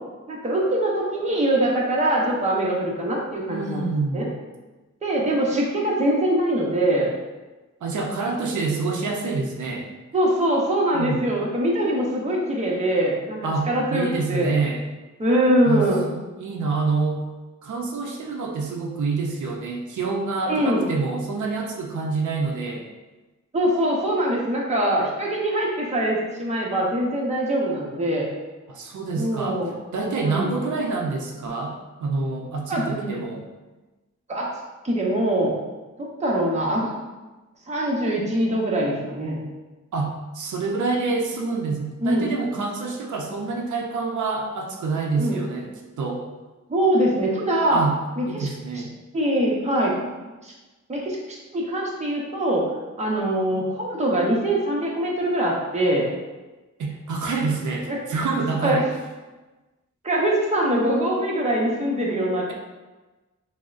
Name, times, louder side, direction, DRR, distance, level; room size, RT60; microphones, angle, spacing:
voice 1, 0.3-3.9 4.1-4.3 5.0-7.1 10.1-13.4 13.7-14.5 15.2-16.1 20.5-20.9 23.5-28.2 29.2-29.8 30.2-30.5 32.7-33.2 34.3-34.5 34.8-35.5 36.0-36.9 37.7-39.4 42.0-42.3 45.2-45.4 46.7-47.8 48.2-48.5 49.1-49.9 50.4-50.5 50.9-52.7 53.0-56.1 57.9-58.0 58.6-58.8 60.0-62.5, right 1 dB, 25° right, -3 dB, 0.7 m, -23 dB
voice 2, 3.5-4.3 7.8-9.9 10.9-11.3 13.4-14.8 15.6-17.2 17.6-22.9 28.7-33.4 39.9-45.7 46.0-46.2 47.7-48.0 48.3-48.9 56.8-58.9, right 4 dB, 75° right, 1 dB, 0.5 m, -27 dB
6.0 x 2.1 x 2.4 m, 1.2 s
wide cardioid pair, 155°, 30 cm